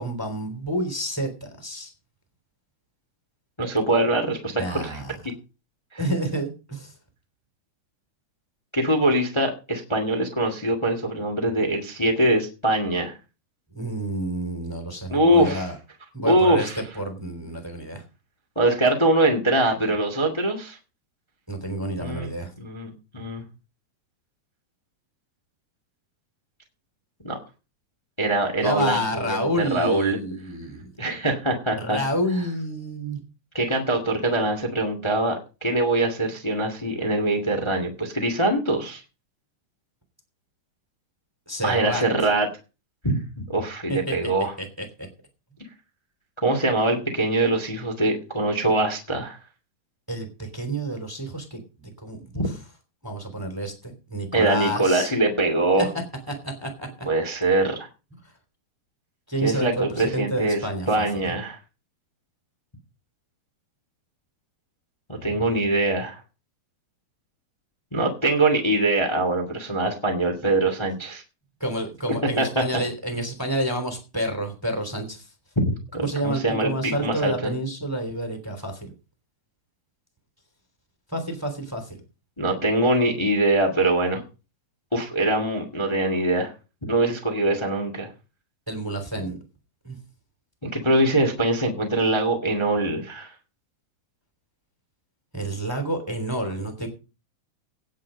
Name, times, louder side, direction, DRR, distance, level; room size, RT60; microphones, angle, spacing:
voice 1, 0.0-1.9 4.5-5.2 6.0-6.9 13.7-15.8 16.1-18.0 21.5-22.5 28.6-30.9 31.8-33.2 41.5-42.0 43.9-44.1 44.6-45.1 50.1-52.4 53.0-55.1 55.8-55.9 56.3-57.1 59.3-61.0 71.6-75.3 76.0-78.9 81.1-82.0 88.7-89.4 89.8-90.0 95.3-96.9, right 1 dB, 5° right, 5 dB, 2.5 m, -29 dB
voice 2, 3.6-5.0 5.9-6.0 8.7-13.1 15.1-15.6 16.2-16.8 18.5-20.8 22.0-22.3 22.6-23.4 27.2-27.4 28.2-30.2 31.0-32.0 33.5-39.0 41.6-42.5 43.0-44.5 46.4-49.4 52.3-52.4 54.3-55.9 57.0-57.9 59.4-60.6 60.9-61.6 65.1-66.2 67.9-71.2 72.4-72.5 75.5-77.5 82.4-84.2 84.9-86.5 86.8-88.1 90.6-93.3, right 2 dB, 20° left, 3 dB, 0.8 m, -23 dB
17.5 x 6.5 x 5.2 m, 0.32 s
omnidirectional pair, 4.8 m